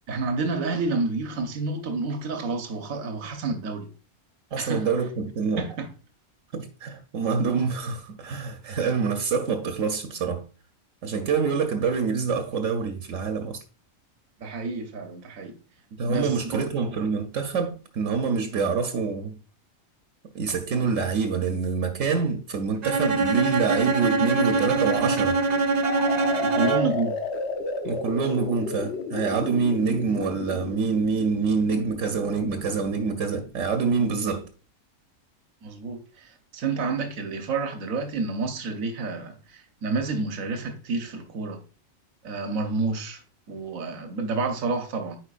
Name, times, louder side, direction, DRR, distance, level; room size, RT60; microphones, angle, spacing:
voice 1, 0.1-3.9 4.6-4.9 5.6-5.9 14.4-15.5 16.1-16.6 26.4-27.1 35.6-36.0 36.5-41.6 42.2-43.2 43.5-45.2, right 3 dB, 90° right, 1.3 m, -29 dB
voice 2, 4.5-5.7 6.5-10.4 11.0-13.6 16.0-19.4 20.3-25.4 27.8-34.5, right 5 dB, 75° right, 1.1 m, -26 dB
Bowed string instrument, 22.8-27.1, right 3 dB, 45° right, 0.6 m, -24 dB
sound 1, 25.8-33.5, left 4 dB, 60° left, 1.0 m, -33 dB
8.9 x 4.5 x 2.4 m
omnidirectional pair, 1.4 m